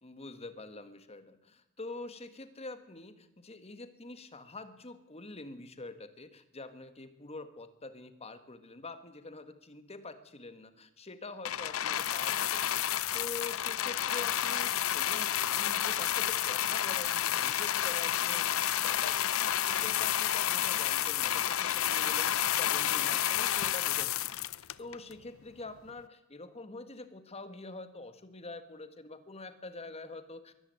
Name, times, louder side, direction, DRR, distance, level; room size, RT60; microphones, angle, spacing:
voice 1, 0.0-18.5 18.8-24.1 24.5-30.5, left 2 dB, 30° left, 10 dB, 1.7 m, -46 dB
sound 1, 11.4-25.1 25.9-26.0, left 11 dB, 75° left, 0.6 m, -30 dB
23.0 x 13.5 x 9.4 m, 0.95 s
head